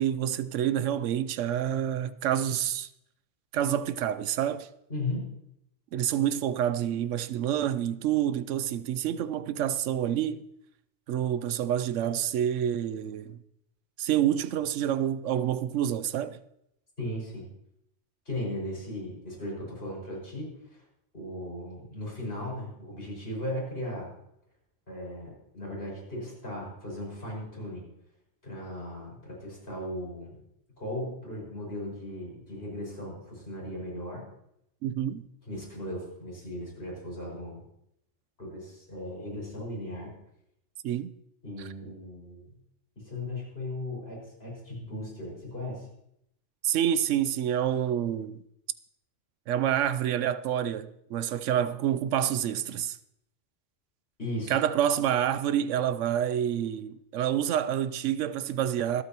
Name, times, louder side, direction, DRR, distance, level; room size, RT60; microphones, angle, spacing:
voice 1, 0.0-2.9 3.5-4.7 5.9-10.5 11.1-13.4 14.0-16.4 34.8-35.2 40.8-41.1 41.6-41.7 46.6-48.4 49.5-53.0 54.5-59.0, right 10 dB, 80° right, 0.9 m, -28 dB
voice 2, 4.9-5.3 17.0-17.4 18.3-20.8 21.1-24.1 24.9-27.8 28.4-30.3 30.8-34.2 35.5-37.6 38.4-40.1 41.4-42.6 43.0-45.9 54.2-54.6, left 1 dB, 50° left, 5.9 m, -37 dB
25.5 x 8.6 x 2.9 m
omnidirectional pair, 1.2 m